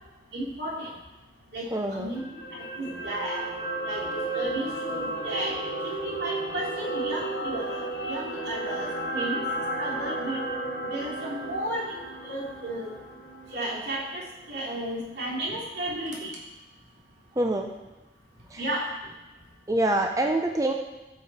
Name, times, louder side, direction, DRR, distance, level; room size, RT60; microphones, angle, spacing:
voice 1, 0.3-0.9 1.5-2.2 2.5-3.4 3.8-5.5 6.0-9.4 9.8-10.4 10.9-12.9 13.5-14.2 14.5-16.3 18.6-18.9, right 1 dB, 75° right, -4 dB, 3.1 m, -33 dB
voice 2, 1.7-2.1 17.4-17.7 18.5-18.6 19.7-20.7, right 1 dB, 20° right, 3 dB, 0.6 m, -25 dB
sound 1, 2.2-14.5 14.8-15.0, right 2 dB, 90° left, 2.0 m, -33 dB
13.5 x 6.9 x 4.2 m, 1.1 s
head